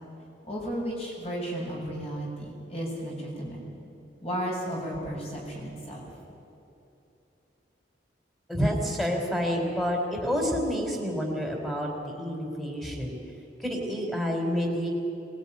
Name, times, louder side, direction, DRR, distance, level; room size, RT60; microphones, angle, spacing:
voice 1, 0.4-3.6 4.2-6.0, equal, 35° left, -3 dB, 7.1 m, -34 dB
voice 2, 8.5-13.2 13.6-14.9, equal, ahead, 2 dB, 3.9 m, -28 dB
22.5 x 19.5 x 10.0 m, 2.9 s
head